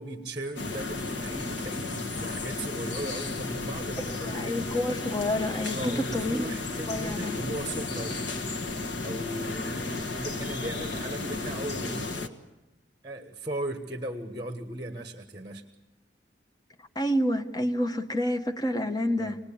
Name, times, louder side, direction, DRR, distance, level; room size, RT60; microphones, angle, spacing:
voice 1, 0.0-4.7 5.7-8.2 9.0-12.5 13.0-15.6 19.2-19.4, right 1 dB, 25° right, 7 dB, 1.2 m, -37 dB
sound 1, 0.6-12.3, left 3 dB, 70° left, 1.6 m, -33 dB
voice 2, 4.2-6.6 6.9-7.4 16.9-19.4, left 1 dB, 20° left, 6 dB, 1.1 m, -29 dB
26.5 x 19.5 x 8.6 m, 1.1 s
head